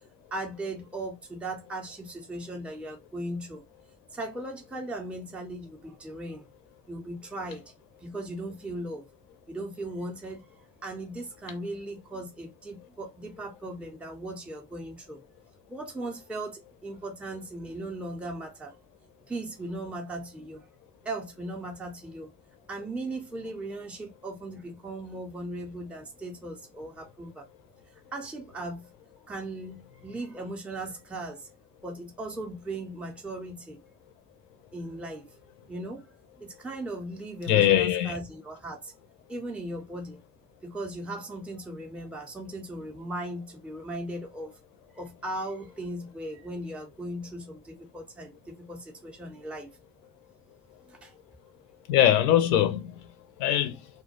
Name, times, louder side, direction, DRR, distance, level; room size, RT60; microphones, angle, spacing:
voice 1, 0.3-3.7 4.1-6.5 6.9-7.7 8.0-9.1 9.5-10.5 10.8-15.3 15.7-18.8 19.3-20.7 21.0-22.3 22.7-27.5 28.1-28.8 29.3-31.5 31.8-33.8 34.7-35.3 35.7-36.1 36.4-38.9 39.3-40.2 40.6-44.5 44.9-49.7 50.9-51.2, right 1 dB, ahead, 0.5 m, -38 dB
voice 2, 37.5-38.1 51.9-52.9 53.4-53.8, left 11 dB, 70° left, 0.6 m, -21 dB
2.1 x 2.1 x 2.8 m
figure-of-eight pair, 55°, 50 cm